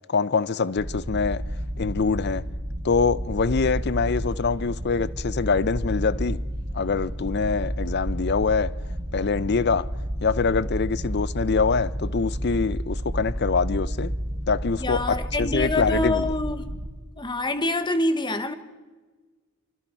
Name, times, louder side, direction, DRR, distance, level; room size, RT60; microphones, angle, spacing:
voice 1, 0.1-1.4 1.8-2.4 2.8-6.4 6.7-8.8 9.1-9.9 10.2-14.1 14.5-16.3, left 4 dB, 50° left, 0.6 m, -24 dB
sound 1, 0.8-16.9, equal, 35° right, 1.9 m, -30 dB
voice 2, 14.8-16.7 17.2-18.5, left 2 dB, 20° left, 1.3 m, -26 dB
26.0 x 25.5 x 4.6 m
head